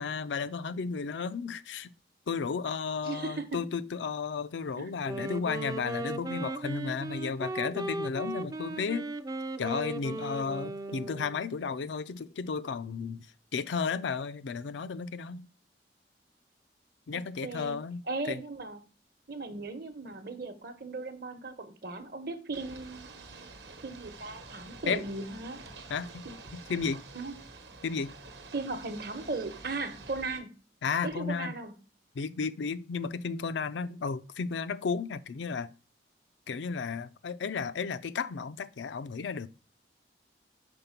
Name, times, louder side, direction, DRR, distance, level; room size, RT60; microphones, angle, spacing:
voice 1, 0.0-1.9 2.3-9.1 9.6-13.3 13.5-15.5 17.1-18.0 18.3-18.4 24.9-25.0 25.9-26.3 26.5-27.0 27.8-28.1 30.8-31.5 32.2-35.7 36.5-39.5, left 5 dB, 85° left, 0.4 m, -33 dB
voice 2, 3.0-3.6 4.8-4.9 17.1-17.8 18.1-18.8 19.3-23.6 23.8-25.6 26.2-26.3 27.1-27.4 28.5-30.5 31.0-31.7, right 3 dB, 55° right, 0.9 m, -37 dB
Wind instrument woodwind instrument, 4.9-11.5, right 2 dB, 20° right, 0.3 m, -37 dB
Ocean / Boat Water vehicle, 22.5-30.4, right 3 dB, 75° right, 1.0 m, -48 dB
5.3 x 4.0 x 5.8 m
head